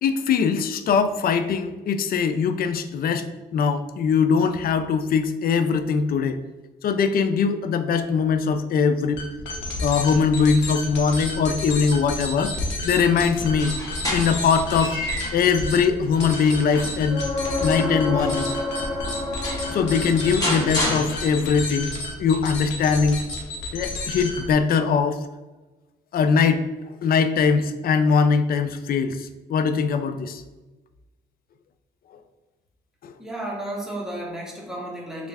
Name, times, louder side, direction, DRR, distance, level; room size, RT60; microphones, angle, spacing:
voice 1, 0.0-3.3 3.5-6.4 6.8-9.2 9.8-12.5 12.8-13.7 14.1-15.0 15.3-17.2 17.6-18.5 19.7-21.9 22.2-23.2 23.7-25.2 26.1-26.7 27.0-30.4 33.0-33.1, left 5 dB, 55° left, 9 dB, 0.4 m, -21 dB
sound 1, 9.1-24.6, left 2 dB, 85° left, 0.8 m, -31 dB
sound 2, 13.4-15.5 16.0-18.6 19.1-19.2 19.4-21.7, left 1 dB, 20° left, 1.4 m, -31 dB
sound 3, 17.1-20.8 24.5-24.6, left 2 dB, 40° left, 0.9 m, -29 dB
voice 2, 33.2-35.3, right 1 dB, 5° right, -2 dB, 1.0 m, -33 dB
3.0 x 2.4 x 3.3 m, 1.2 s
supercardioid pair, 65°, 19 cm